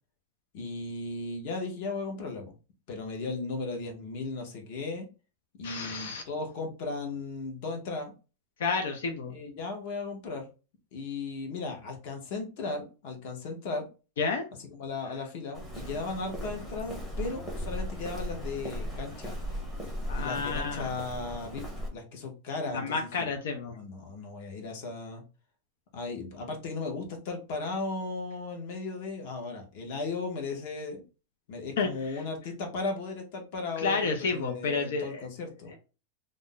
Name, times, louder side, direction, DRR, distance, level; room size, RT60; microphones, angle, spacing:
voice 1, 0.5-2.5 2.9-5.1 5.6-8.1 9.3-10.5 10.9-13.9 14.7-19.3 20.2-23.3 23.7-25.2 25.9-31.0 31.5-35.7, left 3 dB, 45° left, 3 dB, 0.8 m, -36 dB
voice 2, 5.6-6.2 8.6-9.4 14.2-14.5 20.1-20.9 22.7-23.8 31.8-32.2 33.8-35.2, left 4 dB, 85° left, 4 dB, 0.6 m, -30 dB
Walk footsteps, 15.5-21.9, equal, 5° left, 0.7 m, -37 dB
2.5 x 2.1 x 3.7 m, 0.33 s
supercardioid pair, 170°, 0 cm